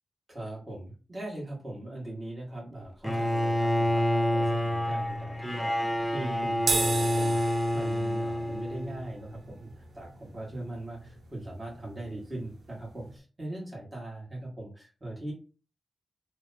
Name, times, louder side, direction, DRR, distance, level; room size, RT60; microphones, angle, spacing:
voice 1, 0.3-15.3, right 1 dB, 25° right, -3 dB, 1.5 m, -40 dB
Bowed string instrument, 3.0-9.2, left 1 dB, 10° left, 0.5 m, -28 dB
sound 1, 6.6-13.2, right 4 dB, 65° right, 0.6 m, -36 dB
3.0 x 2.2 x 4.1 m, 0.33 s
wide cardioid pair, 140°, 0 cm